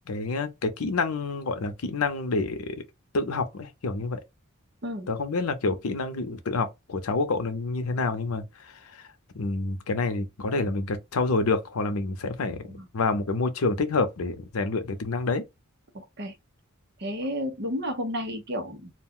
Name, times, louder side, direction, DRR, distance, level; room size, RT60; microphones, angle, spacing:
voice 1, 0.1-2.8 3.1-4.2 5.1-8.4 8.9-9.0 9.3-15.4, left 3 dB, 85° left, 0.6 m, -28 dB
voice 2, 15.9-16.3 17.0-18.9, equal, 50° right, 0.8 m, -32 dB
2.4 x 2.2 x 3.6 m
head